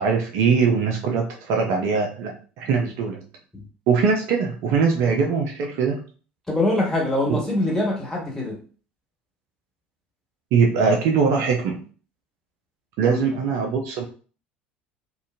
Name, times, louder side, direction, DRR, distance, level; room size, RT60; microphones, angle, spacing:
voice 1, 0.0-3.2 3.9-6.0 7.3-7.4 10.5-11.8 13.0-14.0, right 5 dB, 55° right, 1 dB, 0.5 m, -21 dB
voice 2, 6.5-8.6 13.0-13.2, left 1 dB, 10° left, -3 dB, 1.4 m, -24 dB
2.8 x 2.5 x 2.4 m, 0.39 s
figure-of-eight pair, 65°, 6 cm